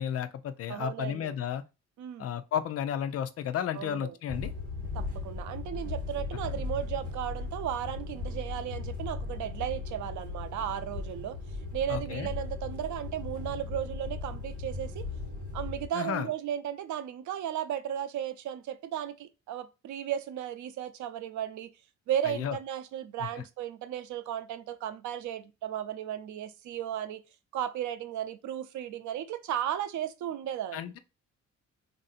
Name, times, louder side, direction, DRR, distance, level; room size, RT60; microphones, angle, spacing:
voice 1, 0.0-1.6 2.2-4.5 11.9-12.3 15.9-16.3 22.2-22.6 23.2-23.3 30.7-31.0, left 9 dB, 55° left, 0.5 m, -33 dB
voice 2, 0.7-1.3 2.0-2.3 3.7-4.2 4.9-11.4 11.7-15.0 15.5-21.7 22.1-27.2 27.5-30.9, right 10 dB, 80° right, 0.6 m, -35 dB
sound 1, 4.3-15.9, left 3 dB, 55° right, 1.8 m, -37 dB
3.6 x 2.6 x 4.1 m
cardioid pair, 170°, 29 cm